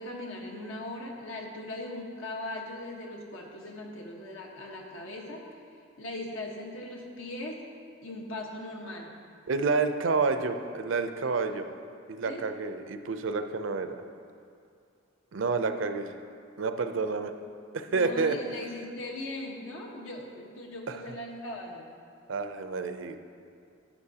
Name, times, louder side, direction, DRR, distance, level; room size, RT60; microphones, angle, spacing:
voice 1, 0.0-5.6 6.0-7.6 8.0-9.1 12.2-12.5 17.8-21.9, left 1 dB, 90° left, 0 dB, 1.3 m, -39 dB
voice 2, 9.5-11.7 12.1-14.0 15.3-16.2 16.6-17.3 17.7-18.4 20.9-21.0 22.3-23.2, right 4 dB, 75° right, 8 dB, 0.5 m, -29 dB
11.5 x 8.5 x 2.8 m, 2.5 s
head